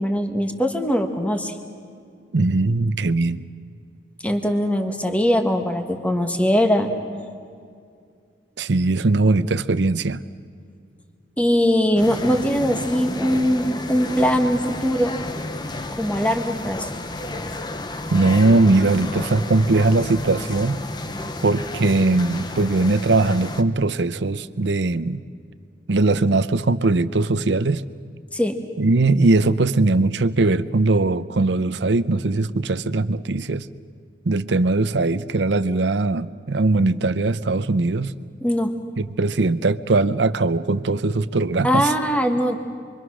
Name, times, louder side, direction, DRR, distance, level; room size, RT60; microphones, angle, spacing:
voice 1, 0.0-1.5 4.2-6.9 11.4-15.1 16.0-16.9 28.3-28.6 38.4-38.7 41.6-42.6, equal, 10° left, 5 dB, 1.5 m, -21 dB
voice 2, 2.3-3.4 8.6-10.2 18.1-20.8 21.4-25.2 25.9-27.8 28.8-33.7 34.3-38.1 39.0-41.9, right 3 dB, 75° right, 15 dB, 0.7 m, -20 dB
sound 1, 12.0-23.6, left 2 dB, 25° left, 0.9 m, -32 dB
28.0 x 23.5 x 6.3 m, 2.3 s
head